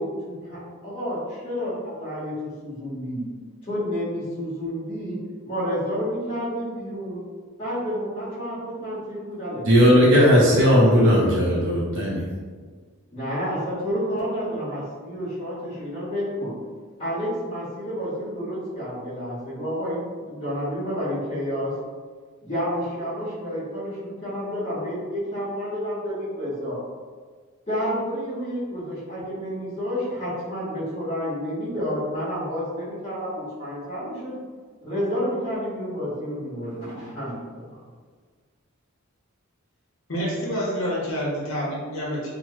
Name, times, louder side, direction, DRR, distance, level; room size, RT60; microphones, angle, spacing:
voice 1, 0.0-3.3 3.6-5.2 5.4-7.2 7.6-9.7 10.4-11.0 13.1-16.5 17.0-21.7 22.4-26.8 27.7-34.3 34.8-37.6, equal, 25° left, -11 dB, 1.3 m, -30 dB
voice 2, 9.7-12.2, equal, 65° right, -5 dB, 0.6 m, -17 dB
voice 3, 40.1-42.3, equal, 65° left, -4 dB, 1.0 m, -27 dB
2.9 x 2.3 x 3.0 m, 1.5 s
head